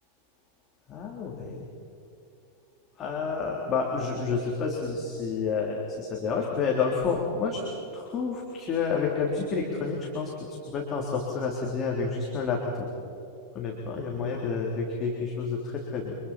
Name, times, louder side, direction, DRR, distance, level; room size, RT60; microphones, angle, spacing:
voice 1, 0.9-1.6 3.0-7.6 7.9-12.9 13.5-16.2, left 5 dB, 30° left, -2 dB, 3.5 m, -29 dB
29.5 x 26.5 x 4.5 m, 2.7 s
figure-of-eight pair, 90°, 0 cm